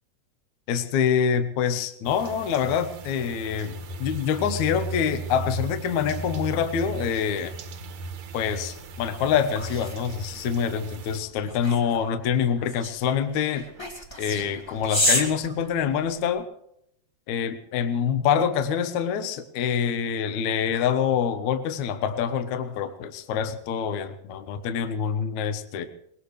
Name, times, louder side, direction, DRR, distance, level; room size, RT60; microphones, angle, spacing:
voice 1, 0.7-7.5 8.3-13.7 14.2-16.4 17.3-25.9, left 7 dB, 75° left, 8 dB, 1.7 m, -26 dB
sound 1, 2.0-11.2, right 2 dB, 65° right, 1.9 m, -36 dB
sound 2, 8.9-16.4, equal, 35° left, 0.4 m, -31 dB
22.5 x 19.5 x 3.3 m, 0.73 s
omnidirectional pair, 4.8 m